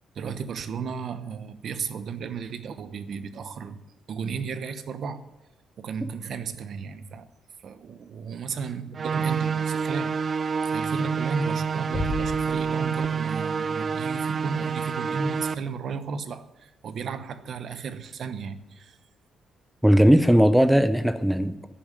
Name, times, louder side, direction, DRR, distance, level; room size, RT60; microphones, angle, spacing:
voice 1, 0.1-3.8 4.1-5.3 5.8-7.3 7.6-10.4 10.7-19.0, right 5 dB, 60° right, 11 dB, 0.9 m, -34 dB
sound 1, 8.9-15.5, right 6 dB, 45° right, 0.5 m, -27 dB
Bass drum, 11.9-13.4, left 2 dB, 50° left, 2.1 m, -33 dB
voice 2, 19.8-21.7, equal, 5° right, 11 dB, 0.7 m, -18 dB
10.5 x 7.1 x 9.0 m, 1.0 s
cardioid pair, 90°, 0 cm